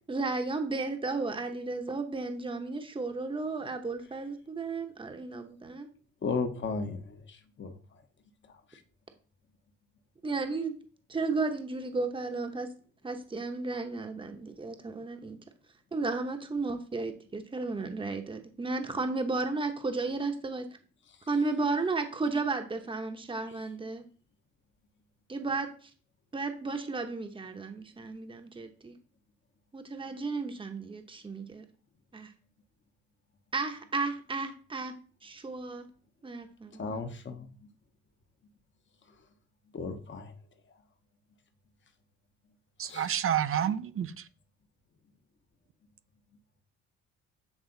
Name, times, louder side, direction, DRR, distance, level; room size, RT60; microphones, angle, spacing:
voice 1, 0.1-5.9 10.2-10.7 11.1-12.7 13.0-15.4 15.9-20.7 21.3-24.0 25.3-25.7 26.3-29.0 29.7-31.6 32.1-32.3 33.5-34.9 35.2-35.9 36.2-36.4, right 3 dB, 15° right, 0.9 m, -33 dB
voice 2, 6.2-8.0 8.5-8.8 36.8-37.1 39.7-40.4 42.8-43.1, left 4 dB, 40° left, 1.0 m, -35 dB
voice 3, 42.8-44.3, right 9 dB, 45° right, 0.5 m, -29 dB
8.1 x 3.3 x 3.9 m
cardioid pair, 90°, 30 cm